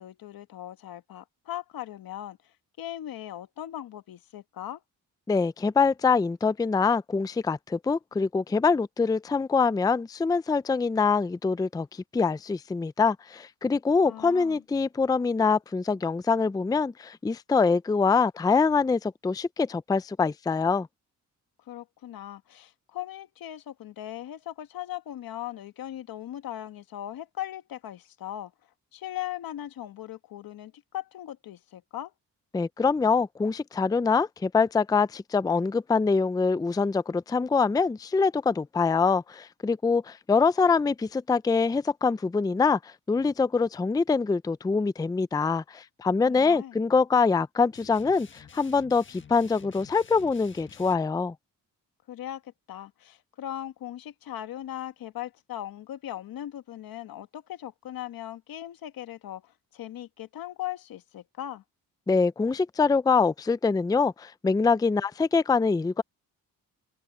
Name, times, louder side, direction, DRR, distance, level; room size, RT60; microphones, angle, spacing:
voice 1, 0.0-2.4 2.8-4.8 14.0-14.6 21.7-28.5 28.9-32.1 46.2-46.8 52.1-61.6, left 12 dB, 80° left, 1.6 m, -39 dB
voice 2, 5.3-11.9 12.1-20.9 32.5-51.3 62.1-66.0, left 4 dB, 10° left, 0.4 m, -24 dB
sound 1, 47.7-51.0, left 6 dB, 35° left, 1.4 m, -51 dB
open air
cardioid pair, 100°, 35 cm